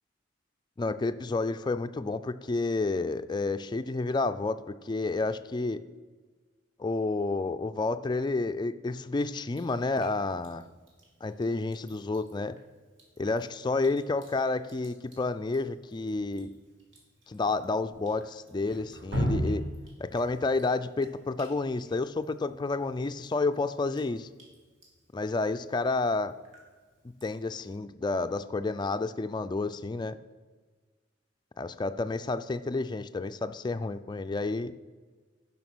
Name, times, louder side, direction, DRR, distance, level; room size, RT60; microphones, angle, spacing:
voice 1, 0.8-5.8 6.8-10.6 11.2-12.6 13.2-16.5 17.3-19.6 20.0-24.3 25.1-26.3 27.2-30.2 31.6-34.7, left 3 dB, 20° left, 11 dB, 0.3 m, -30 dB
Drip, 9.5-27.8, equal, 75° right, 2.8 m, -42 dB
11.0 x 5.7 x 6.1 m, 1.4 s
head